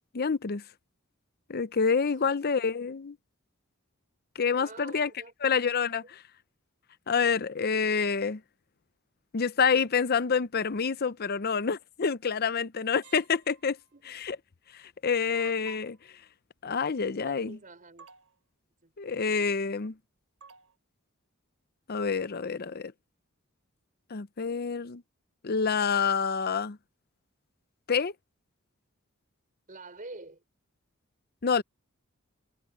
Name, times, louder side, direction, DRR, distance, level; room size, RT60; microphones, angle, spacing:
voice 1, 0.1-0.6 1.5-3.2 4.4-5.1 5.4-6.0 7.1-8.4 9.3-13.8 14.1-14.4 14.7-16.0 16.6-17.6 19.0-19.9 21.9-22.9 24.1-25.0 25.4-26.8 27.9-28.1 31.4-31.6, left 5 dB, 45° left, 0.6 m, -27 dB
voice 2, 4.6-6.2 13.9-14.2 17.2-18.1 18.8-18.9 29.7-30.4, right 2 dB, 40° right, 5.2 m, -48 dB
sound 1, 12.9-13.8 15.3-16.1 17.5-17.6 18.0-18.4 20.4-20.8, right 5 dB, 90° right, 3.4 m, -53 dB
head